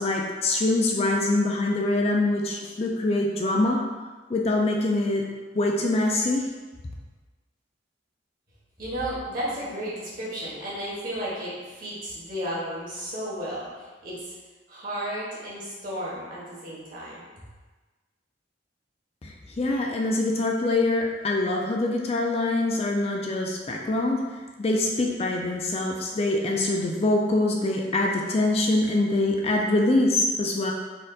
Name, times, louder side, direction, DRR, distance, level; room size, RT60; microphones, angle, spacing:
voice 1, 0.0-3.8 4.3-5.2 5.5-6.5 19.2-24.2 24.6-30.7, left 2 dB, 35° left, 0 dB, 0.4 m, -24 dB
voice 2, 8.8-14.3 14.7-17.2, equal, 50° right, -7 dB, 1.4 m, -33 dB
4.2 x 2.5 x 3.8 m, 1.3 s
head